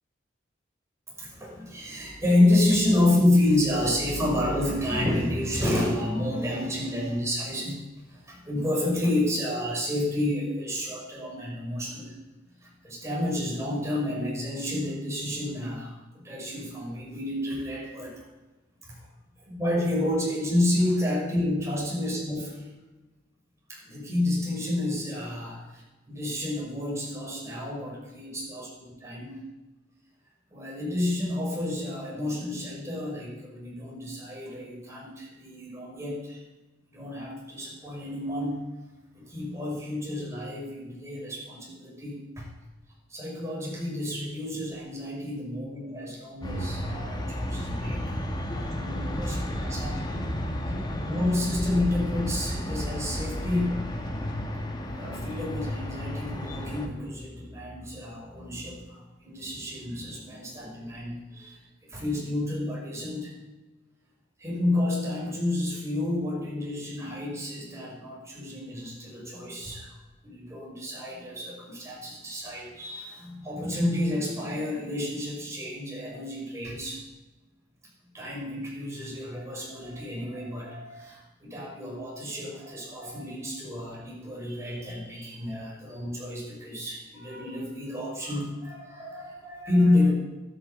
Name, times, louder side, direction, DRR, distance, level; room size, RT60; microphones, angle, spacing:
voice 1, 1.2-7.8 8.1-12.2 12.6-18.2 18.9-19.1 19.4-22.7 23.7-29.4 30.5-36.4 36.9-38.7 39.1-42.5 43.1-50.2 51.0-53.8 55.0-61.6 61.9-63.3 64.4-69.9 70.2-77.0 78.1-90.1, left 1 dB, 15° right, -3 dB, 6.1 m, -29 dB
sound 1, 46.4-56.9, equal, 25° left, 1.8 m, -32 dB
12.5 x 12.0 x 8.5 m, 1.1 s
head